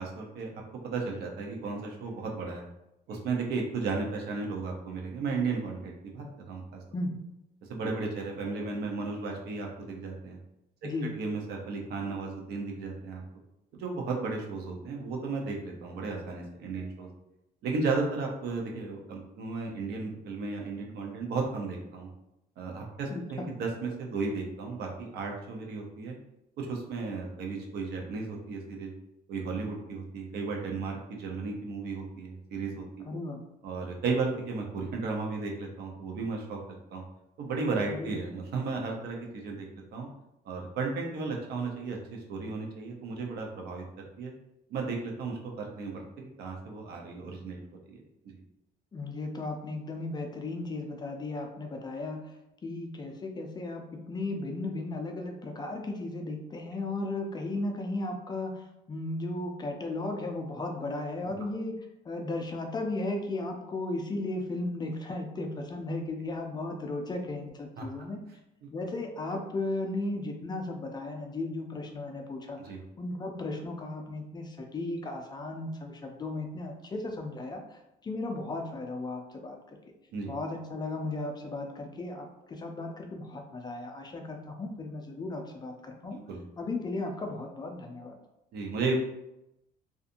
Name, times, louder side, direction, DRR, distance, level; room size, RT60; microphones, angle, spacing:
voice 1, 0.0-2.6 3.1-6.8 7.7-10.4 11.0-13.2 13.7-17.1 17.6-22.1 22.6-26.1 26.6-28.9 29.3-32.8 33.6-37.0 37.4-39.7 39.9-40.1 40.4-44.3 44.7-47.6 47.9-48.4 61.2-61.3 67.8-67.9 68.6-68.7 72.6-72.8 80.1-80.3 86.3-86.4 88.5-89.0, right 4 dB, 70° right, 1 dB, 0.6 m, -34 dB
voice 2, 10.8-11.1 23.1-23.5 33.0-33.4 37.9-38.2 48.9-52.3 52.6-61.8 62.0-68.2 68.7-79.6 80.3-86.2 86.6-88.2, left 2 dB, 25° left, 3 dB, 0.4 m, -35 dB
2.6 x 2.5 x 2.5 m, 0.87 s
cardioid pair, 110°, 17 cm